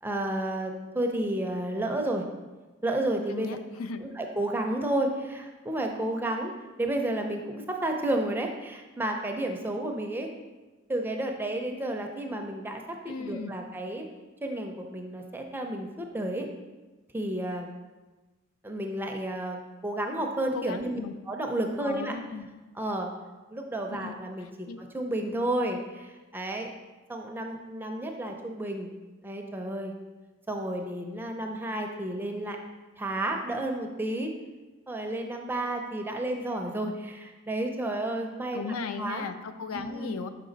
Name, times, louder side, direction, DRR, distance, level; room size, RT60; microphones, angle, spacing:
voice 1, 0.0-2.2 2.8-3.6 4.0-6.5 6.8-10.3 10.9-14.1 14.4-16.5 17.1-17.7 18.6-19.6 19.8-22.2 22.7-23.1 23.5-26.7 27.1-28.9 29.2-29.9 30.5-32.6 33.0-34.3 34.9-39.3 39.7-40.2, right 1 dB, 10° right, 2 dB, 0.4 m, -31 dB
voice 2, 3.3-4.0 13.1-13.5 20.5-21.1 21.8-22.5 23.9-24.1 24.7-24.8 38.5-40.3, left 4 dB, 85° left, 10 dB, 0.4 m, -36 dB
5.5 x 5.1 x 3.9 m, 1.2 s
head